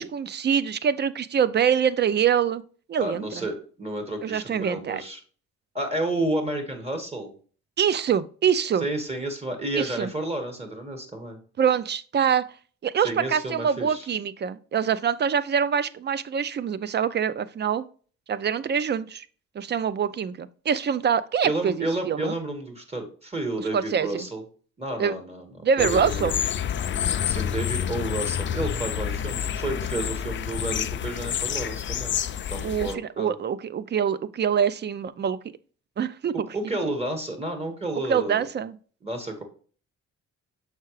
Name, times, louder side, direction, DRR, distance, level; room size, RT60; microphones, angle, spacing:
voice 1, 0.0-2.6 2.9-3.4 4.2-5.0 7.8-8.9 9.7-10.1 11.6-12.5 12.8-17.8 18.3-19.3 19.6-22.3 23.7-24.3 25.0-25.1 25.6-26.4 32.6-35.4 36.0-36.5 38.1-38.8, right 7 dB, 35° right, 0.4 m, -25 dB
voice 2, 3.0-5.2 5.7-7.3 8.8-11.4 13.0-14.1 21.4-24.4 24.8-25.5 25.8-26.3 27.2-32.2 32.5-33.3 36.5-38.5 39.0-39.4, right 2 dB, 20° right, 1.7 m, -31 dB
sound 1, 25.8-32.9, left 9 dB, 40° left, 0.4 m, -28 dB
6.6 x 4.7 x 3.1 m
cardioid pair, 90°, 30 cm